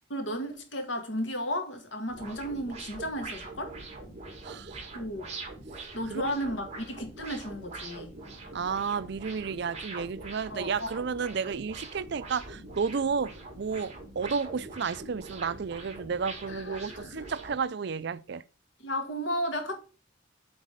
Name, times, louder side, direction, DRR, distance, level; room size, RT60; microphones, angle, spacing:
voice 1, 0.1-3.7 4.9-5.3 5.9-8.2 10.5-11.0 16.5-17.2 18.8-19.7, equal, 75° left, 2.0 m, -34 dB
sound 1, 2.1-17.6, right 3 dB, 35° right, 2.1 m, -43 dB
voice 2, 4.4-4.8 6.1-6.2 8.5-18.4, right 5 dB, 60° right, 0.5 m, -32 dB
8.0 x 4.1 x 5.1 m
head